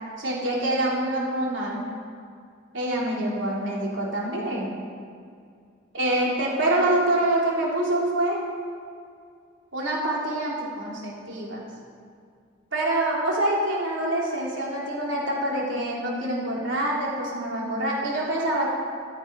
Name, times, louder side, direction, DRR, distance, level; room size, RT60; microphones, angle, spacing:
voice 1, 0.2-1.8 2.7-4.7 5.9-8.4 9.7-11.6 12.7-18.7, right 1 dB, 65° right, -4 dB, 3.8 m, -26 dB
15.0 x 12.5 x 5.4 m, 2.2 s
head